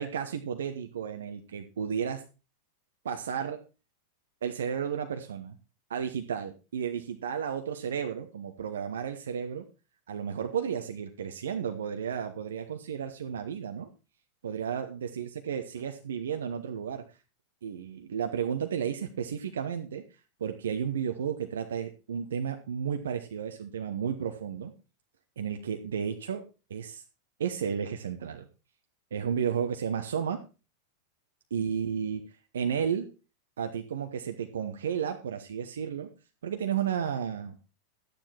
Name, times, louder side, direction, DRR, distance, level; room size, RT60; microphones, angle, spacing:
voice 1, 0.0-2.2 3.0-3.6 4.4-5.6 5.9-9.6 10.1-13.9 14.4-17.0 17.6-20.0 20.4-24.7 25.4-26.4 26.7-27.0 27.4-28.5 29.1-30.4 31.5-32.2 32.5-33.1 33.6-36.1 36.4-37.5, right 7 dB, 65° right, 6 dB, 1.0 m, -33 dB
12.0 x 9.5 x 4.4 m, 0.32 s
figure-of-eight pair, 90°, 0 cm